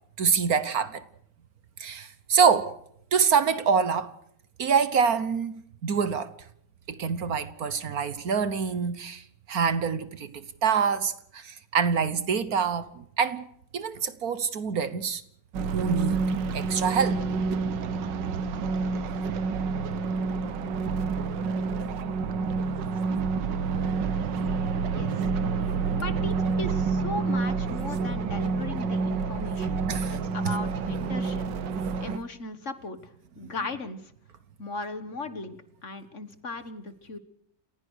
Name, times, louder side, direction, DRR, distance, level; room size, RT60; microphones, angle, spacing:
voice 1, 0.2-1.0 1.8-2.7 3.1-4.1 4.6-5.5 5.8-6.3 6.9-9.2 9.5-13.5 13.7-15.2 15.7-16.3 16.5-17.2 29.9-30.2, right 6 dB, 60° right, 1.5 m, -25 dB
sound 1, 15.5-32.2, right 4 dB, 85° right, 1.7 m, -28 dB
voice 2, 25.9-29.8 30.1-31.5 32.0-34.1 34.6-37.2, left 3 dB, 45° left, 1.7 m, -37 dB
29.0 x 16.0 x 6.4 m
omnidirectional pair, 1.9 m